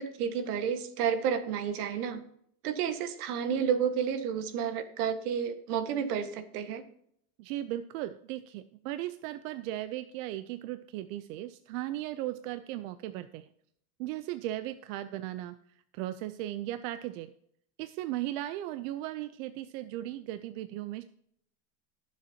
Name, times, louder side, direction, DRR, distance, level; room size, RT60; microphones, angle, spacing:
voice 1, 0.0-2.2 2.6-6.8, right 7 dB, 85° right, 9 dB, 1.7 m, -31 dB
voice 2, 7.4-13.5 14.0-15.6 15.9-17.3 17.8-21.0, right 14 dB, 65° right, 11 dB, 0.7 m, -37 dB
19.5 x 7.3 x 2.9 m, 0.68 s
supercardioid pair, 155°, 44 cm